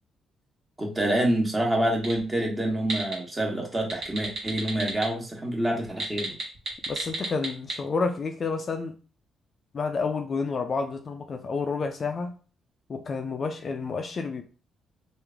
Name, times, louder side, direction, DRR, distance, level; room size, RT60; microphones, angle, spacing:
voice 1, 0.8-6.3, right 1 dB, 20° right, 1.3 m, -27 dB
sound 1, 2.0-2.2 2.6-3.1 3.8-5.0 5.9-7.7, right 3 dB, 45° right, 1.4 m, -31 dB
voice 2, 6.9-8.9 9.7-12.3 12.9-14.4, left 4 dB, 45° left, 0.4 m, -30 dB
3.1 x 2.5 x 3.4 m
cardioid pair, 90°, 0 cm